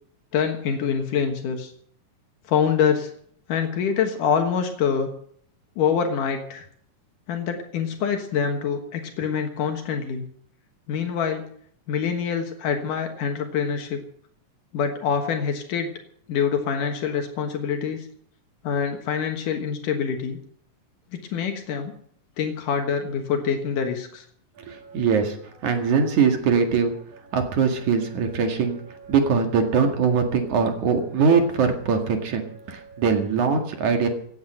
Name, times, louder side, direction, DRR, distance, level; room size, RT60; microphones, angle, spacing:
voice 1, 0.3-1.7 2.5-3.1 3.5-5.1 5.8-6.7 7.3-10.2 10.9-11.4 11.9-14.0 14.7-15.9 16.3-18.1 18.6-20.4 21.3-21.9 22.4-24.3, left 7 dB, 75° left, 5 dB, 3.0 m, -25 dB
voice 2, 24.7-25.4 25.6-26.9 27.3-34.1, right 5 dB, 65° right, 5 dB, 3.3 m, -22 dB
17.0 x 9.5 x 7.9 m, 0.63 s
omnidirectional pair, 3.7 m